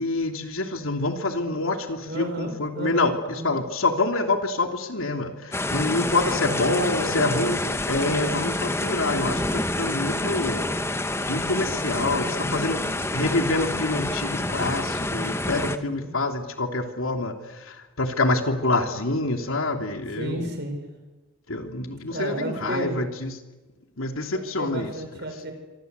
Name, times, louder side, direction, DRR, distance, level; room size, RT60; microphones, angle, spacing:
voice 1, 0.0-7.6 7.9-10.6 11.3-12.9 13.1-20.5 21.5-23.4 24.0-24.9, left 2 dB, 75° left, 5 dB, 3.0 m, -26 dB
voice 2, 2.1-3.6 6.3-7.6 7.9-8.4 15.7-16.1 20.2-20.8 22.1-23.0 24.3-25.5, right 1 dB, 50° right, 5 dB, 6.2 m, -33 dB
sound 1, 5.5-15.8, left 2 dB, 10° left, 1.1 m, -27 dB
26.0 x 25.5 x 8.2 m, 1.1 s
head